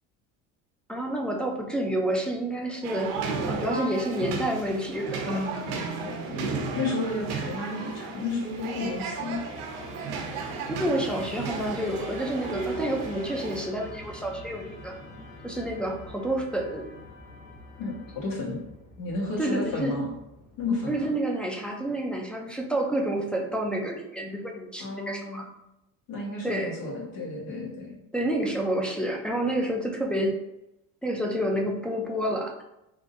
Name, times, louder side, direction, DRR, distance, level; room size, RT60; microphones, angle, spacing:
voice 1, 0.9-3.2 3.5-5.3 10.7-14.9 15.4-16.9 19.4-20.0 20.9-25.4 26.4-26.7 28.1-30.4 31.0-32.6, right 1 dB, 5° left, -1 dB, 0.4 m, -29 dB
sound 1, 2.8-13.7, right 4 dB, 80° right, 0.7 m, -34 dB
voice 2, 5.3-9.4 17.8-18.6 19.0-20.1 20.6-21.1 24.8-25.4 26.1-27.9, left 2 dB, 70° left, -3 dB, 1.5 m, -32 dB
Musical instrument, 6.0-21.3, left 1 dB, 45° left, 0.9 m, -46 dB
3.6 x 2.6 x 2.5 m, 0.88 s
cardioid pair, 110°, 35 cm